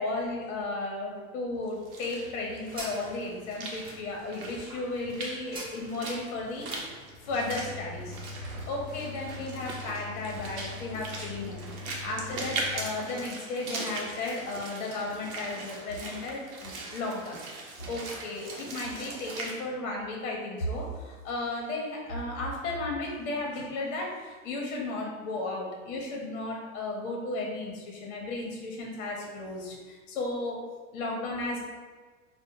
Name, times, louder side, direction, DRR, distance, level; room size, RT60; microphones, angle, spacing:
voice 1, 0.0-6.7 7.2-11.6 12.0-17.4 17.9-30.6 30.9-31.6, left 2 dB, 65° left, -1 dB, 0.8 m, -34 dB
Walk footsteps / Splash splatter, 1.7-19.5, right 2 dB, 85° right, 0.8 m, -40 dB
sound 1, 1.9-8.5, right 1 dB, 15° right, 0.5 m, -47 dB
sound 2, 7.2-12.9, left 3 dB, 25° left, 0.8 m, -42 dB
3.5 x 2.1 x 2.8 m, 1.4 s
hypercardioid pair, 115°, 42 cm